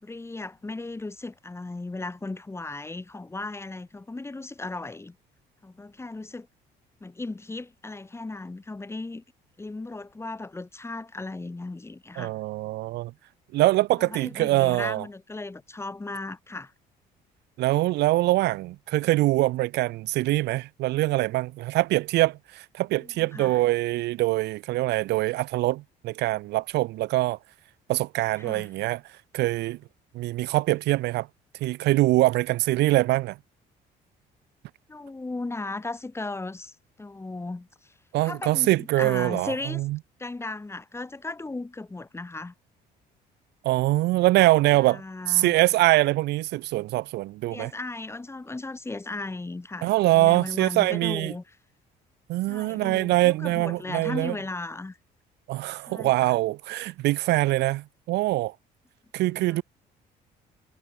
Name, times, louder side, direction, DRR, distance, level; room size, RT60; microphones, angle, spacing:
voice 1, 0.0-5.2 5.6-6.5 7.0-9.2 9.6-12.3 14.0-16.7 22.9-23.6 28.4-28.7 34.9-37.9 38.2-39.8 40.2-42.5 44.7-45.5 47.5-51.4 52.5-55.0 55.9-56.4 59.3-59.6, left 2 dB, 15° left, 4.2 m, -36 dB
voice 2, 12.2-13.1 13.5-15.0 17.6-27.4 27.9-29.0 29.3-29.8 30.1-31.3 31.6-33.4 38.1-40.0 43.6-45.0 45.3-47.7 49.8-51.3 52.3-54.3 55.5-58.5 59.1-59.6, right 18 dB, 85° right, 2.9 m, -23 dB
cardioid pair, 110°, 17 cm